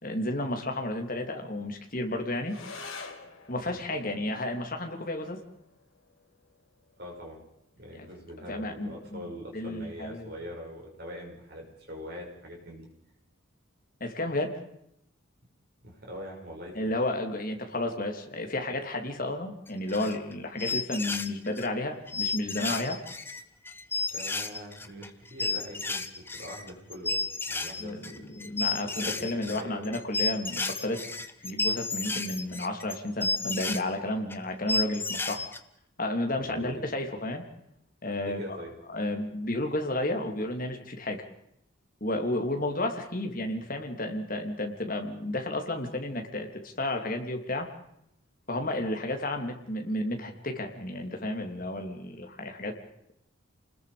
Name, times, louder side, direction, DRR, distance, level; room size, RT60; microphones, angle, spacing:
voice 1, 0.0-2.6 3.5-5.4 7.9-8.1 8.5-9.3 9.5-10.3 14.0-14.6 16.7-23.0 27.8-31.0 31.4-35.4 36.0-37.4 38.0-38.6 38.9-41.2 42.0-47.7 48.5-52.7, left 1 dB, 40° left, 4 dB, 3.0 m, -32 dB
sound 1, 2.4-11.4, left 4 dB, 80° left, 3.1 m, -50 dB
voice 2, 7.0-7.4 7.8-12.9 15.8-16.9 24.1-27.2 27.5-28.3 29.2-30.0 36.4-36.7 37.0-37.1 38.2-38.7, equal, 50° right, -1 dB, 6.6 m, -43 dB
sound 2, 19.7-20.3 20.6-21.7 22.1-33.8 34.3-34.4 34.7-35.6, left 3 dB, 10° left, 1.0 m, -32 dB
29.5 x 20.0 x 5.2 m, 0.76 s
head